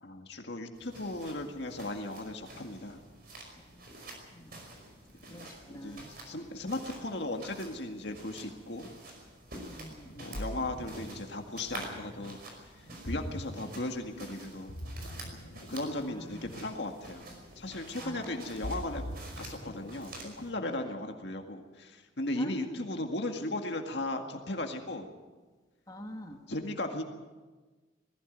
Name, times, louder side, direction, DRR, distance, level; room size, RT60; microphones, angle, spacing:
voice 1, 0.0-3.0 5.3-8.9 10.2-12.4 12.8-14.7 15.7-17.3 17.6-19.0 19.4-25.1 26.5-27.0, left 2 dB, 60° left, 4 dB, 2.0 m, -37 dB
sound 1, 0.7-20.5, right 2 dB, 50° right, 5.3 m, -49 dB
voice 2, 5.3-6.1 9.6-10.3 16.0-16.5 18.0-18.6 20.6-20.9 22.4-22.6 25.9-26.4, equal, 20° left, 3 dB, 1.6 m, -46 dB
Ocean, 9.9-20.7, equal, 80° left, 2.1 m, -43 dB
20.5 x 15.0 x 9.3 m, 1.3 s
head